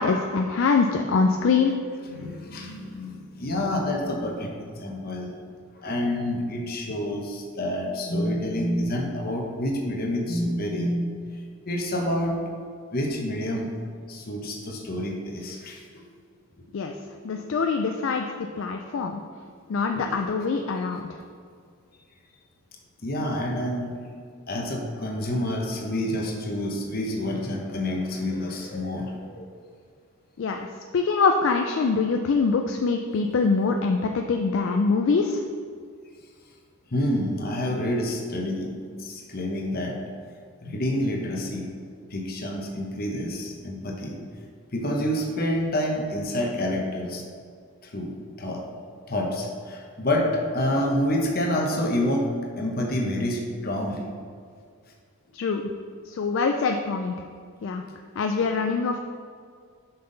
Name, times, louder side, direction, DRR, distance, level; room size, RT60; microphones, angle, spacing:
voice 1, 0.0-1.7 16.7-16.9 17.2-18.3 18.6-19.2 19.7-21.1 30.4-30.7 30.9-35.4 55.3-55.7 56.1-57.1 57.6-57.8 58.2-59.0, left 4 dB, 60° left, 4 dB, 0.3 m, -24 dB
voice 2, 2.1-5.3 5.7-11.1 11.7-12.4 12.9-13.7 14.1-15.8 16.5-17.0 17.3-17.6 19.9-20.2 23.0-23.9 24.5-29.5 36.9-40.0 40.6-41.7 42.1-44.2 44.7-47.2 47.8-48.6 49.1-52.3 52.6-54.1, left 1 dB, 40° left, 1 dB, 0.9 m, -28 dB
5.7 x 5.6 x 3.9 m, 2.1 s
head